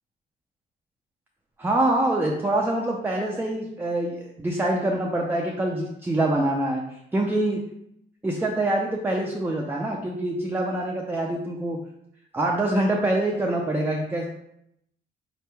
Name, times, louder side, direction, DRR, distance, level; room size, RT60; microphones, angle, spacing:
voice 1, 1.6-6.8 7.1-7.6 8.2-11.8 12.3-14.3, right 1 dB, 10° right, -1 dB, 0.5 m, -25 dB
4.3 x 2.9 x 3.4 m, 0.78 s
cardioid pair, 90°, 20 cm